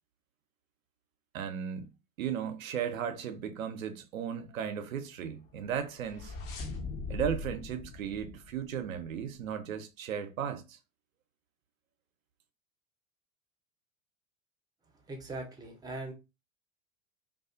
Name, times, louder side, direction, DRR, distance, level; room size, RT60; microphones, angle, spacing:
voice 1, 1.3-1.9 2.2-6.4 7.1-10.8, right 8 dB, 70° right, 0.5 m, -36 dB
sound 1, 5.6-9.2, left 3 dB, 40° left, 0.7 m, -41 dB
voice 2, 15.1-16.1, right 2 dB, 10° right, 0.5 m, -40 dB
2.4 x 2.3 x 2.3 m
figure-of-eight pair, 80°, 41 cm